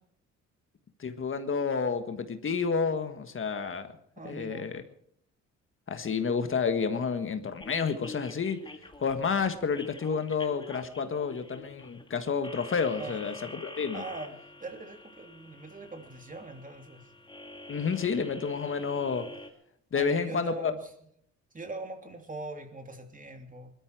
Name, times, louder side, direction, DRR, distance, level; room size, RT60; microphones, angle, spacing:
voice 1, 1.0-3.9 4.2-4.8 5.9-8.6 9.0-14.0 17.7-19.3 19.9-20.7, left 5 dB, 45° left, 8 dB, 1.6 m, -30 dB
voice 2, 4.2-4.7 13.0-13.3 13.9-17.1 19.9-20.9 21.5-23.7, right 3 dB, 25° right, 5 dB, 2.9 m, -42 dB
sound 1, 7.6-19.5, left 2 dB, 15° left, 2.1 m, -47 dB
20.0 x 13.0 x 4.9 m, 0.68 s
cardioid pair, 90°, 30 cm